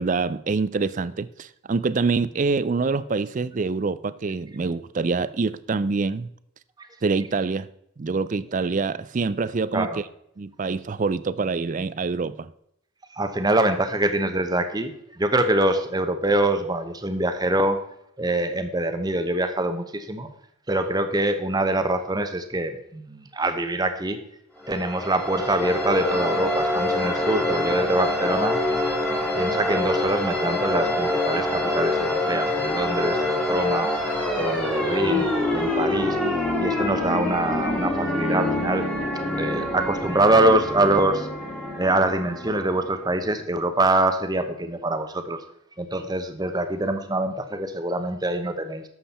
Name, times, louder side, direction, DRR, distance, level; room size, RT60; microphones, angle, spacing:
voice 1, 0.0-6.3 7.0-7.7 8.0-9.9 10.4-12.5, right 4 dB, 35° right, 0.4 m, -25 dB
voice 2, 13.1-17.8 18.2-20.3 20.7-24.2 24.7-28.6 29.3-33.9 34.4-35.3 35.5-36.2 36.6-38.8 39.3-41.3 41.8-45.4 45.8-48.8, right 2 dB, 20° right, 0.9 m, -24 dB
sound 1, 24.6-43.2, left 1 dB, 5° left, 1.8 m, -25 dB
11.5 x 7.4 x 4.2 m
head